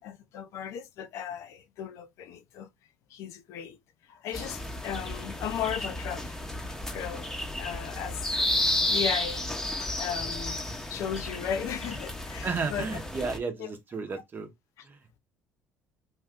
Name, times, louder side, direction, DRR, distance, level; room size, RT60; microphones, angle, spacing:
voice 1, 0.0-2.7 3.1-3.8 4.1-6.4 6.9-7.3 7.6-8.4 8.9-9.4 9.8-10.6 10.9-13.0 13.6-13.7, left 8 dB, 65° left, 0.5 m, -36 dB
sound 1, 4.3-13.4, left 1 dB, 10° left, 0.8 m, -32 dB
voice 2, 12.4-14.5 14.8-15.2, right 4 dB, 35° right, 0.8 m, -33 dB
2.6 x 2.3 x 3.5 m
supercardioid pair, 75°, 6 cm